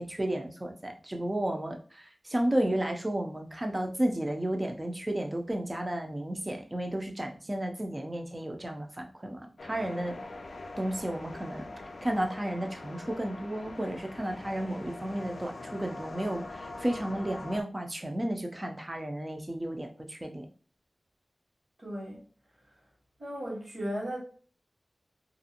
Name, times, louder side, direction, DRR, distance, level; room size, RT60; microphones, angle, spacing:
voice 1, 0.0-10.2 10.8-11.6 12.0-20.5, right 1 dB, 30° right, 3 dB, 0.6 m, -33 dB
sound 1, 9.6-17.6, left 2 dB, 75° left, 0.3 m, -43 dB
voice 2, 21.8-22.2 23.2-24.2, equal, 70° right, -4 dB, 1.4 m, -35 dB
2.5 x 2.3 x 2.8 m, 0.42 s
cardioid pair, 45°, 0 cm